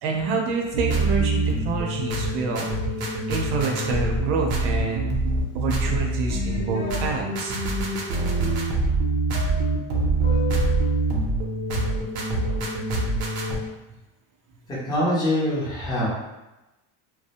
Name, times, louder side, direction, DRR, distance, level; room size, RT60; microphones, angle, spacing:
voice 1, 0.0-2.7 3.3-5.1 5.5-7.5, right 4 dB, 90° right, 1 dB, 0.6 m, -27 dB
sound 1, 0.7-13.6, right 2 dB, 50° right, 0.5 m, -25 dB
sound 2, 5.9-7.2 9.3-11.0, left 6 dB, 90° left, 0.6 m, -36 dB
voice 2, 14.7-16.1, left 1 dB, 10° left, -7 dB, 0.3 m, -24 dB
2.4 x 2.0 x 2.7 m, 1.0 s
cardioid pair, 165°, 43 cm